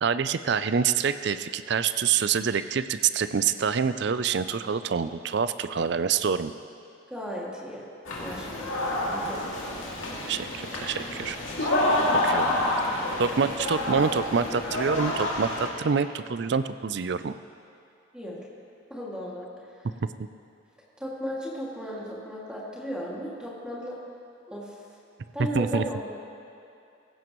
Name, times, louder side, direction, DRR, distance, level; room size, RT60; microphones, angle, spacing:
voice 1, 0.0-6.5 10.3-11.7 12.2-12.5 13.2-17.3 25.5-25.8, right 6 dB, 55° right, 12 dB, 0.4 m, -26 dB
voice 2, 7.1-7.9 8.2-9.4 11.9-12.2 18.1-18.4 18.9-19.9 21.0-24.0 24.5-24.8 25.3-26.1, equal, 5° right, -6 dB, 2.2 m, -36 dB
sound 1, 8.1-15.7, left 1 dB, 75° left, 2.5 m, -28 dB
17.0 x 15.5 x 3.1 m, 2.7 s
head